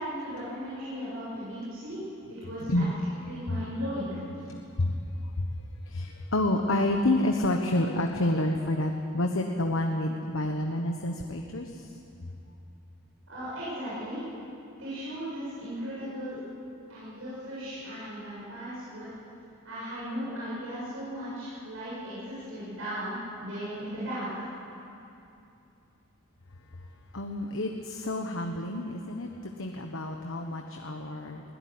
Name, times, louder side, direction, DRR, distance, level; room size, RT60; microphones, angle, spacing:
voice 1, 0.0-2.0 2.3-2.8 3.3-4.2 13.3-14.2 14.8-16.4 16.9-19.1 19.6-24.5, equal, 65° right, -10 dB, 7.8 m, -36 dB
voice 2, 4.5-5.0 5.4-5.5 5.9-11.9 27.1-31.4, left 1 dB, 65° left, 3 dB, 1.3 m, -29 dB
22.0 x 17.0 x 9.7 m, 2.7 s
head